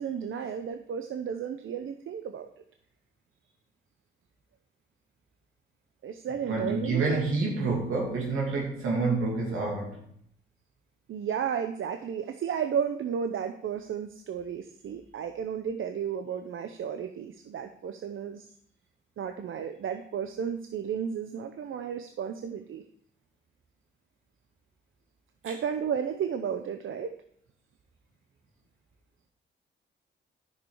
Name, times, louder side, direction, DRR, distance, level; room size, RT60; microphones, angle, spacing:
voice 1, 0.0-2.5 6.0-7.2 11.1-18.5 19.2-22.8 25.4-27.2, right 7 dB, 75° right, 0.7 m, -33 dB
voice 2, 6.5-10.0 25.4-25.5, right 3 dB, 90° right, 2.4 m, -28 dB
9.8 x 6.7 x 4.8 m
cardioid pair, 60°, 21 cm